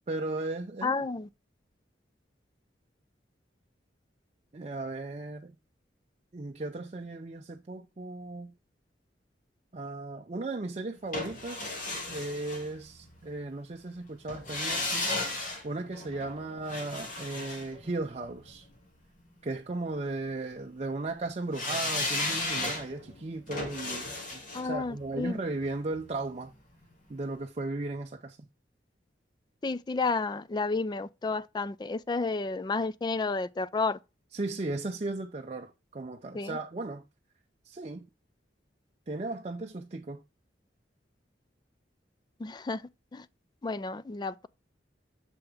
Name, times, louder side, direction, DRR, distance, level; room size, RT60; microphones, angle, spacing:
voice 1, 0.1-1.1 4.5-5.6 6.3-8.5 9.7-15.2 15.6-18.7 19.4-26.5 27.1-28.4 34.3-37.0 37.6-38.1 39.1-40.2, right 2 dB, 35° right, 0.5 m, -36 dB
voice 2, 0.8-1.3 24.5-25.4 29.6-34.0 36.3-36.6 42.4-42.8 43.1-43.2 43.6-44.5, left 3 dB, 25° left, 0.3 m, -31 dB
sound 1, 11.1-13.2 14.3-18.5 21.5-26.5 26.8-26.9, left 2 dB, 45° left, 2.2 m, -35 dB
6.8 x 5.4 x 3.4 m
head